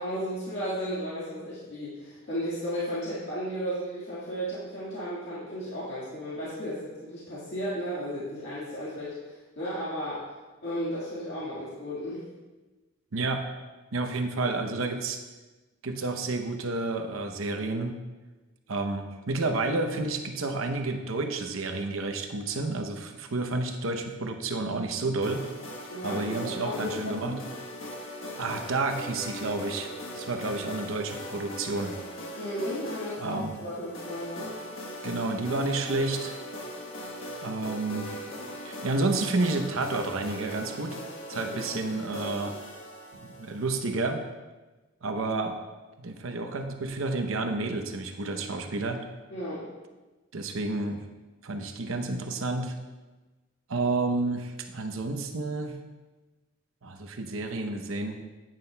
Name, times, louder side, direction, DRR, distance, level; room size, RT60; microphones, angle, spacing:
voice 1, 0.0-10.3 10.6-12.3 25.9-27.4 32.4-34.5 41.4-41.7 49.3-49.7, equal, 55° left, -9 dB, 1.8 m, -34 dB
voice 2, 13.1-13.4 13.9-15.2 15.8-17.9 18.7-25.5 26.0-27.3 28.4-32.0 33.2-33.5 35.0-36.3 37.4-38.3 38.6-41.0 41.3-42.5 43.4-44.2 45.0-45.5 46.0-49.0 50.3-51.0 51.4-52.7 53.7-55.7 56.8-58.2, right 3 dB, 75° right, 5 dB, 0.8 m, -30 dB
sound 1, 25.2-43.8, left 1 dB, 75° left, 1.3 m, -40 dB
9.6 x 9.0 x 2.3 m, 1.2 s
head